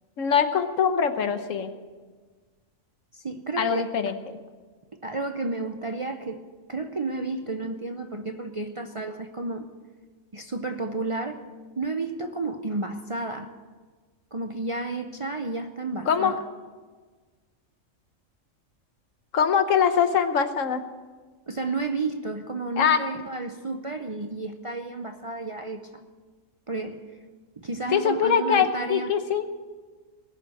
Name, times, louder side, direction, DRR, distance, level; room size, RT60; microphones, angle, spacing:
voice 1, 0.2-1.7 3.6-4.4 16.1-16.4 19.3-20.8 22.8-23.0 27.9-29.5, left 7 dB, 75° left, 9 dB, 1.3 m, -23 dB
voice 2, 3.1-3.9 4.9-6.4 6.7-9.7 10.3-11.5 11.8-13.5 14.3-16.4 21.5-26.0 26.7-27.1 27.6-29.1, right 3 dB, 35° right, 6 dB, 0.5 m, -32 dB
20.0 x 6.9 x 7.7 m, 1.4 s
omnidirectional pair, 1.3 m